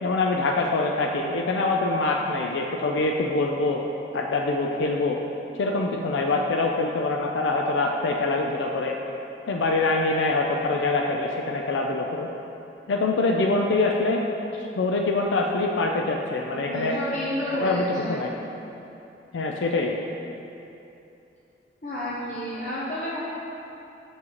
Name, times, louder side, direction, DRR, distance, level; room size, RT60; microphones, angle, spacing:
voice 1, 0.0-3.8 4.1-5.2 5.6-9.0 9.5-12.3 12.9-14.2 14.8-17.0 17.5-18.3 19.3-20.0, left 3 dB, 90° left, 1 dB, 0.4 m, -24 dB
voice 2, 16.5-18.2 21.8-23.2, equal, 45° left, -8 dB, 0.8 m, -30 dB
7.2 x 6.2 x 3.0 m, 2.9 s
head